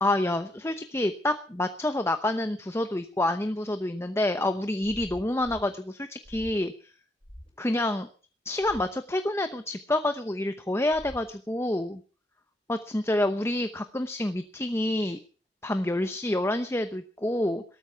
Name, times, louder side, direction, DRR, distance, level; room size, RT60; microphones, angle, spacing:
voice 1, 0.0-6.7 7.6-8.1 8.5-12.0 12.7-15.2 15.6-17.6, left 1 dB, 15° left, 9 dB, 0.9 m, -28 dB
sound 1, 4.8-5.7 6.2-6.6 7.2-7.5 8.6-8.9 10.9-11.3, equal, 30° left, 7.1 m, -45 dB
18.0 x 13.5 x 5.8 m, 0.40 s
head